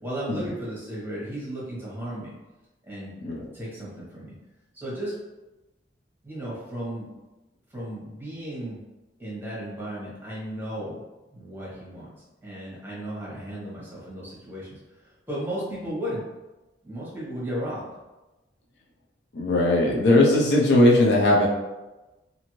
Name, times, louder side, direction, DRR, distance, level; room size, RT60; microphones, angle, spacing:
voice 1, 0.0-2.3 2.8-3.2 3.5-4.3 4.7-5.2 6.2-7.1 7.7-8.8 9.2-11.0 11.3-12.1 12.4-16.2 16.8-17.9, right 1 dB, 10° right, -7 dB, 1.0 m, -35 dB
voice 2, 19.3-21.5, left 1 dB, 60° left, -2 dB, 0.5 m, -19 dB
2.6 x 2.6 x 2.9 m, 1.1 s
head